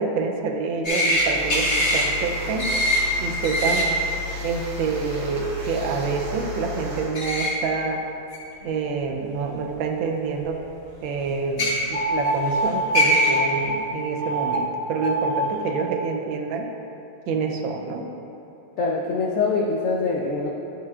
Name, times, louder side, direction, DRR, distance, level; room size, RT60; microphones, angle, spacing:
voice 1, 0.0-2.7 3.2-4.0 4.4-8.0 8.6-10.6 11.0-16.7 17.3-18.0, right 4 dB, 85° right, 3 dB, 1.5 m, -27 dB
sound 1, 0.8-1.2 1.5-2.0 2.6-3.0 3.4-3.8 7.1-7.5 8.3-8.4 9.7-9.8 11.4-11.7 12.6-12.7 12.9-13.3, equal, 35° left, 1.7 m, -21 dB
sound 2, 1.0-7.2, left 2 dB, 40° right, 1.5 m, -34 dB
sound 3, 11.9-13.7 14.2-14.6 14.9-15.8, right 1 dB, 65° right, 0.7 m, -25 dB
voice 2, 18.8-20.5, left 4 dB, 80° left, -1 dB, 0.7 m, -24 dB
10.5 x 7.4 x 2.4 m, 2.8 s
omnidirectional pair, 2.1 m